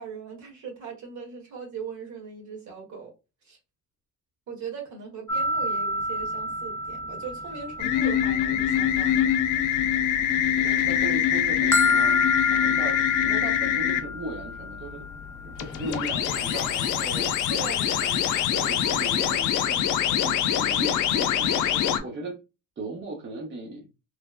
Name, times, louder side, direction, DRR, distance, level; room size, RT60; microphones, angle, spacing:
voice 1, 0.0-3.1 3.4-3.6 4.5-9.7 17.5-17.9, right 5 dB, 70° right, 1.3 m, -39 dB
sound 1, 5.3-10.4 10.7-16.1, left 3 dB, 10° left, 0.5 m, -29 dB
sound 2, 7.8-14.0 15.6-22.0, left 10 dB, 85° left, 0.5 m, -24 dB
voice 2, 10.6-12.3 12.6-15.1 15.6-17.3 17.9-18.2 18.5-22.4 22.8-23.9, right 2 dB, 40° right, 0.8 m, -37 dB
3.2 x 2.1 x 2.3 m
cardioid pair, 90°, 30 cm